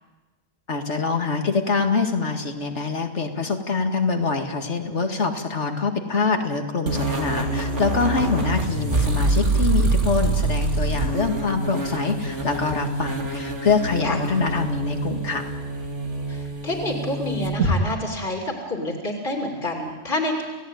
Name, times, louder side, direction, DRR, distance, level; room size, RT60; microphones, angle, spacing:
voice 1, 0.7-15.5, left 4 dB, 70° left, 5 dB, 2.4 m, -25 dB
sound 1, 6.9-17.8, right 2 dB, 80° right, 3.0 m, -25 dB
voice 2, 8.2-8.6 14.0-14.2 16.3-20.4, left 1 dB, 45° left, 1 dB, 3.2 m, -28 dB
30.0 x 17.0 x 9.3 m, 1.3 s
omnidirectional pair, 1.2 m